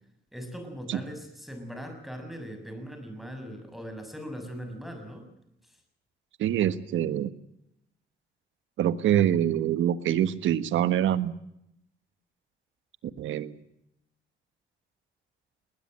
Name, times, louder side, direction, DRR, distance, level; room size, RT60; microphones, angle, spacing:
voice 1, 0.3-5.3, equal, ahead, 7 dB, 6.6 m, -40 dB
voice 2, 6.4-7.3 8.8-11.3 13.2-13.6, right 11 dB, 80° right, 13 dB, 1.5 m, -25 dB
21.0 x 19.5 x 7.8 m, 0.79 s
cardioid pair, 90°, 20 cm